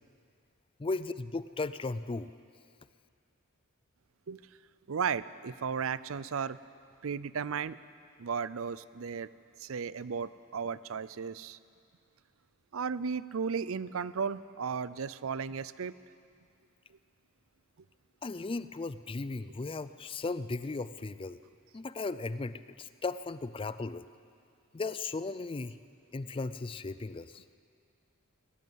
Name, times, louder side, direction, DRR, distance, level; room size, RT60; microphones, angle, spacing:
voice 1, 0.8-2.3 18.2-21.4 21.7-24.0 24.7-25.8 26.1-27.4, left 3 dB, 25° left, 15 dB, 0.4 m, -36 dB
voice 2, 4.9-6.6 7.0-7.8 8.2-9.3 9.6-11.6 12.7-15.9, right 6 dB, 70° right, 17 dB, 0.5 m, -35 dB
17.5 x 15.5 x 9.5 m, 2.3 s
head